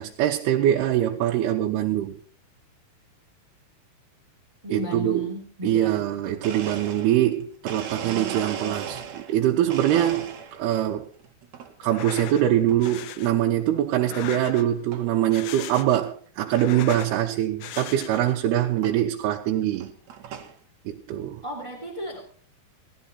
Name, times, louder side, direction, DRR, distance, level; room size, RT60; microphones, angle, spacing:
voice 1, 0.0-2.1 4.7-5.3 5.6-11.1 11.8-19.9 20.9-21.4, right 12 dB, 85° right, 2.9 m, -23 dB
voice 2, 4.6-5.9 21.4-22.2, equal, 10° right, 2.3 m, -34 dB
Domestic sounds home sounds, 6.4-9.4 9.7-10.7 11.2-11.7 12.7-13.0 13.6-13.7 14.6-14.7 14.9-15.2 15.7-15.8 16.0-16.1 16.5-16.6 17.9-18.0 18.8-19.0 19.6-20.5, right 7 dB, 55° right, 2.5 m, -36 dB
sound 1, 11.8-12.4 12.8-13.3 13.9-14.8 15.2-16.1 16.4-17.2 17.6-18.3, left 11 dB, 80° left, 1.7 m, -38 dB
18.0 x 13.0 x 4.2 m
omnidirectional pair, 4.6 m